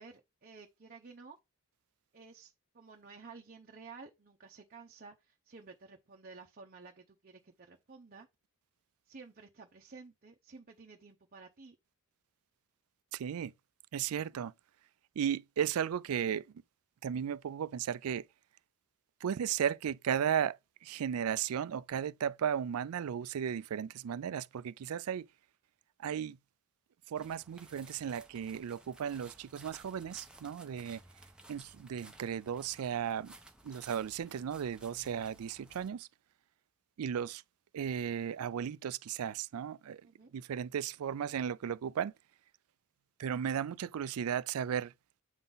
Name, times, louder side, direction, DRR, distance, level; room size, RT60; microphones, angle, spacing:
voice 1, 0.0-1.4 2.1-8.3 9.1-11.8 30.4-30.7 40.0-40.3, right 4 dB, 40° right, 0.7 m, -53 dB
voice 2, 13.1-13.5 13.9-14.5 15.2-16.4 17.0-18.2 19.2-20.6 20.8-25.3 26.0-26.4 27.1-31.0 31.5-33.3 33.6-36.1 37.0-37.4 37.7-40.0 40.3-42.1 43.2-44.9, right 8 dB, 70° right, 0.4 m, -35 dB
sound 1, 27.1-35.9, right 2 dB, 5° right, 0.7 m, -57 dB
7.9 x 3.8 x 3.9 m
head